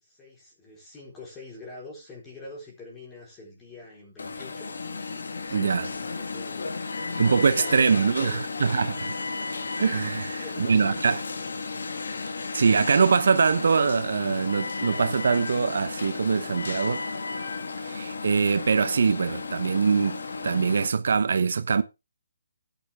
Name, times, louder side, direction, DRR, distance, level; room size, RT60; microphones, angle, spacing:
voice 1, 0.0-4.7 5.1-8.4 10.1-11.2, left 2 dB, 10° left, 4.1 m, -45 dB
Alarm, 4.2-20.9, left 4 dB, 80° left, 2.0 m, -34 dB
voice 2, 5.5-5.9 7.2-9.1 9.8-11.2 12.5-17.0 17.8-20.2 20.4-21.8, right 5 dB, 60° right, 0.8 m, -23 dB
12.0 x 9.2 x 3.5 m
hypercardioid pair, 170°, 0 cm